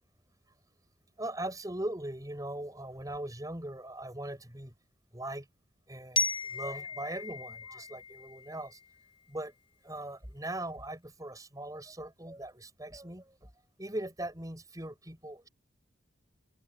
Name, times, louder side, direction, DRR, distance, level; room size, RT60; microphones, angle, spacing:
voice 1, 1.2-4.7 5.1-5.5 5.9-8.8 9.3-9.5 9.8-13.5 13.8-15.5, right 1 dB, 20° right, 6.8 m, -40 dB
Glockenspiel, 6.2-9.0, left 4 dB, 30° left, 5.5 m, -35 dB
open air
head